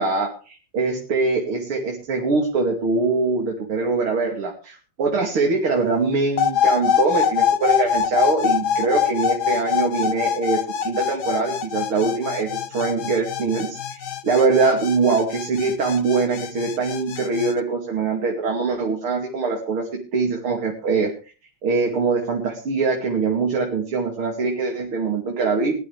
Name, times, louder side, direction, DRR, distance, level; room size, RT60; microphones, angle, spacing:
voice 1, 0.0-21.3 21.6-25.7, right 4 dB, 75° right, 0 dB, 3.5 m, -23 dB
sound 1, 6.4-17.5, left 8 dB, 55° left, 1.4 m, -24 dB
21.0 x 12.0 x 3.5 m, 0.36 s
omnidirectional pair, 2.3 m